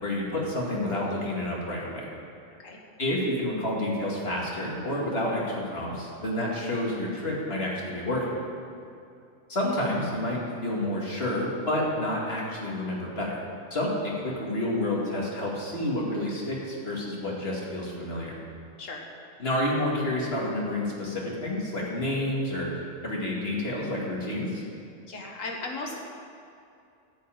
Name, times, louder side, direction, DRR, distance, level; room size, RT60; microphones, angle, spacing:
voice 1, 0.0-2.1 3.0-8.3 9.5-13.4 13.7-18.4 19.4-22.8 23.0-24.6, left 1 dB, 50° left, -4 dB, 2.3 m, -29 dB
voice 2, 25.1-26.0, left 3 dB, 75° left, 1 dB, 1.5 m, -36 dB
12.0 x 5.6 x 8.9 m, 2.5 s
omnidirectional pair, 1.4 m